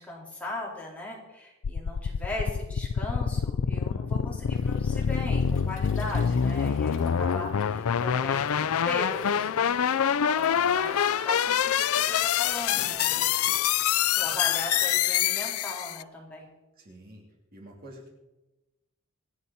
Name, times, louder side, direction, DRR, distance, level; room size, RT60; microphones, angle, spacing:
voice 1, 0.0-9.5 9.8-13.3 14.1-16.5, left 1 dB, 5° left, -4 dB, 4.2 m, -38 dB
sound 1, 1.6-16.0, left 8 dB, 85° left, 0.4 m, -26 dB
Waves surf, 4.5-14.9, left 3 dB, 60° left, 2.3 m, -48 dB
voice 2, 6.4-6.8 10.5-10.8 16.8-17.2 17.5-18.1, right 1 dB, 45° right, -1 dB, 3.3 m, -48 dB
26.5 x 9.5 x 4.2 m, 1.0 s
head